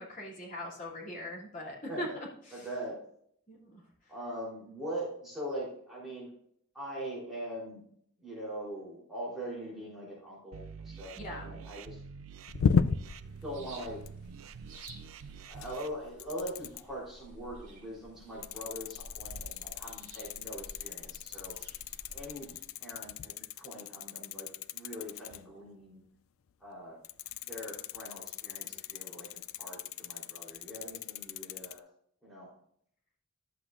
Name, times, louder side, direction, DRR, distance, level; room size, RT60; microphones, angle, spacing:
voice 1, 0.0-2.1 2.5-2.7 3.5-3.8 11.2-11.5, left 1 dB, 35° left, -5 dB, 2.9 m, -41 dB
voice 2, 2.5-3.0 4.1-6.3 6.7-7.8 8.2-12.0 13.2-14.0 15.5-21.6 22.1-22.5 22.8-26.0 26.6-27.0 27.4-31.9 32.2-32.5, equal, ahead, -7 dB, 3.7 m, -42 dB
sound 1, 10.5-15.9, right 5 dB, 65° right, 0.4 m, -47 dB
sound 2, 12.5-13.3 13.9-14.3 14.9-15.0 15.4-15.9 16.2-16.8 18.4-25.4 27.0-31.8, left 6 dB, 70° left, 0.4 m, -35 dB
sound 3, 13.4-22.6, right 1 dB, 35° right, 2.5 m, -52 dB
11.5 x 7.9 x 2.5 m, 0.65 s
head